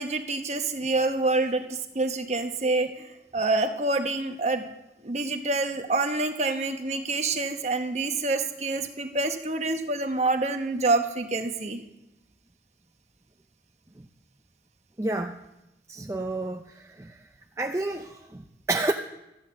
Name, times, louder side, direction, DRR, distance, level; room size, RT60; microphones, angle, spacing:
voice 1, 0.0-2.9 3.3-4.6 5.0-11.8, right 3 dB, 40° right, 7 dB, 1.0 m, -27 dB
voice 2, 15.0-15.4 15.9-17.2 17.6-18.9, right 2 dB, 15° right, 4 dB, 0.4 m, -30 dB
13.5 x 9.8 x 7.0 m, 0.95 s
head